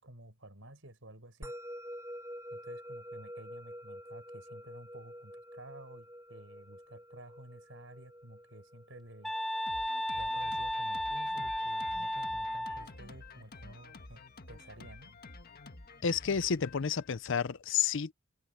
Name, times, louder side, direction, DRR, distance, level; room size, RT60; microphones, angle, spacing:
voice 1, 0.0-1.5 2.5-9.3 10.2-15.1, right 1 dB, 70° right, 6.7 m, -52 dB
Musical instrument, 1.4-12.0, equal, 15° right, 1.5 m, -48 dB
sound 1, 9.2-12.9, left 1 dB, ahead, 0.3 m, -34 dB
Drum kit, 9.7-17.5, left 3 dB, 50° left, 1.6 m, -51 dB
voice 2, 16.0-18.1, left 7 dB, 65° left, 0.6 m, -30 dB
head